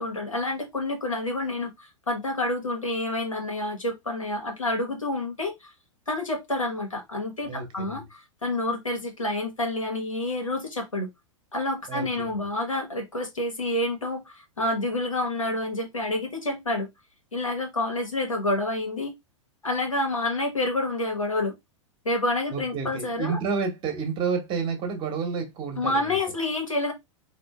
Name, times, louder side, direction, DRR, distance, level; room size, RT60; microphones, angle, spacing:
voice 1, 0.0-5.7 6.1-11.1 11.5-16.9 17.3-19.1 19.6-21.5 22.0-23.4 25.8-26.9, left 2 dB, 85° left, 1.2 m, -28 dB
voice 2, 7.4-8.1 11.9-12.4 22.5-26.2, right 5 dB, 30° right, 1.1 m, -30 dB
4.3 x 2.5 x 2.3 m
figure-of-eight pair, 100°, 17 cm